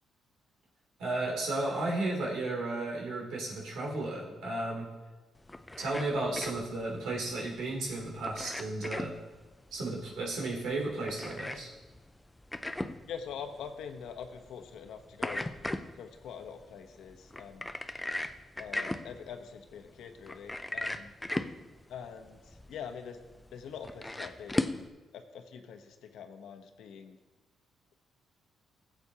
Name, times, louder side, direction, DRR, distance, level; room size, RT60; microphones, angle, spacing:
voice 1, 1.0-4.9 5.8-9.1 9.7-11.7, right 2 dB, 90° right, -2 dB, 2.9 m, -34 dB
sound 1, 5.4-24.9, left 1 dB, 10° left, 0.4 m, -39 dB
voice 2, 13.1-15.5 15.9-17.7 18.6-21.1 21.9-23.2 23.5-24.9 25.1-27.2, left 7 dB, 85° left, 6 dB, 0.9 m, -44 dB
16.5 x 8.0 x 2.8 m, 1.2 s
cardioid pair, 125°, 0 cm